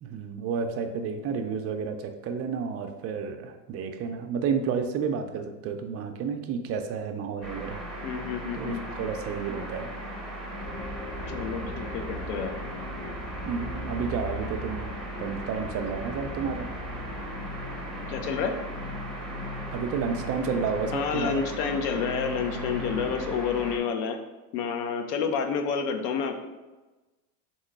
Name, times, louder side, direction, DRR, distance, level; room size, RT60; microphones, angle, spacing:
voice 1, 0.0-7.8 8.5-9.9 13.4-14.9 15.2-16.7 19.7-21.4, right 6 dB, 35° right, 5 dB, 0.5 m, -31 dB
sound 1, 7.4-23.8, right 1 dB, ahead, 0.8 m, -38 dB
voice 2, 8.0-8.8 11.3-12.6 18.1-18.5 20.9-24.2 24.5-26.5, left 6 dB, 75° left, 5 dB, 0.8 m, -29 dB
sound 2, 10.6-23.3, left 1 dB, 30° left, 0.7 m, -40 dB
3.6 x 3.0 x 4.4 m, 1.2 s
supercardioid pair, 115°, 46 cm